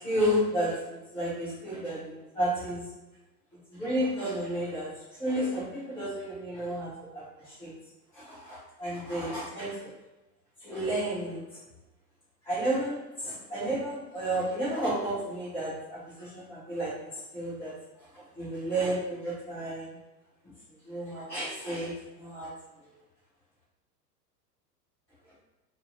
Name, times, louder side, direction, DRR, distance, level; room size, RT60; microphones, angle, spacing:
voice 1, 0.0-2.9 3.7-4.9 5.2-7.7 8.1-9.8 10.6-11.4 12.4-16.9 17.3-17.7 18.1-19.9 20.8-22.5, right 1 dB, 5° left, -13 dB, 0.3 m, -32 dB
2.6 x 2.4 x 2.5 m, 1.0 s
figure-of-eight pair, 95°, 50 cm